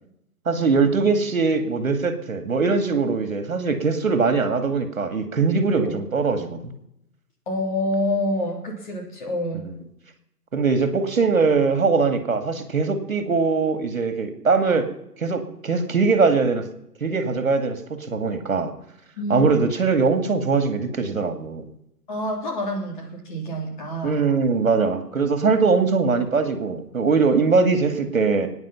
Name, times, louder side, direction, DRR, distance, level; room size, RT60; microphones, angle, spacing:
voice 1, 0.5-6.7 10.5-14.9 15.2-16.6 17.0-18.7 19.3-21.6 24.0-28.5, right 4 dB, 55° right, 8 dB, 2.3 m, -21 dB
voice 2, 7.5-9.7 19.2-19.6 22.1-24.2, left 1 dB, 30° left, 0 dB, 3.3 m, -27 dB
22.0 x 9.8 x 5.8 m, 0.82 s
figure-of-eight pair, 145°, 48 cm